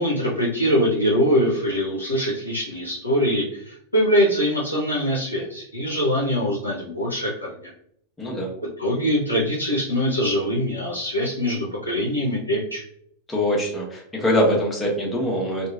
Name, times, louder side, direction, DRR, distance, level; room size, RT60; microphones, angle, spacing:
voice 1, 0.0-7.7 8.8-12.8, equal, 80° left, -5 dB, 0.6 m, -23 dB
voice 2, 8.2-8.5 13.3-15.7, equal, 10° left, -2 dB, 0.9 m, -23 dB
2.9 x 2.4 x 2.3 m, 0.68 s
figure-of-eight pair, 90°, 0 cm